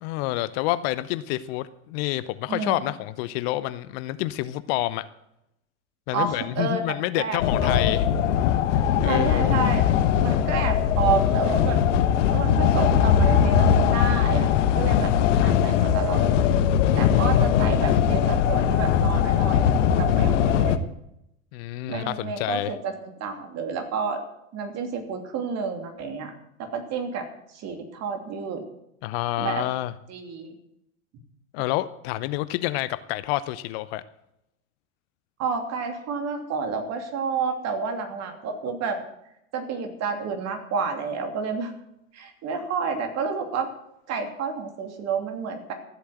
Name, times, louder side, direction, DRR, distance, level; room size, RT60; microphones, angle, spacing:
voice 1, 0.0-5.1 6.1-8.0 9.0-9.7 14.9-15.5 21.5-22.7 29.0-29.9 31.5-34.0, left 16 dB, 50° left, 14 dB, 0.8 m, -28 dB
voice 2, 2.5-2.8 6.1-6.8 7.2-7.8 9.0-11.8 12.3-14.5 14.7-15.1 15.4-16.3 17.0-20.7 21.9-22.9 23.2-24.2 24.5-26.3 26.6-28.6 29.4-29.6 30.1-30.6 35.4-39.0 39.5-41.7 42.1-43.7 44.1-45.7, right 5 dB, 40° right, 5 dB, 2.9 m, -30 dB
sound 1, 7.4-20.8, left 8 dB, 65° left, 1.2 m, -20 dB
14.0 x 8.1 x 8.0 m, 0.82 s
hypercardioid pair, 90°, 40 cm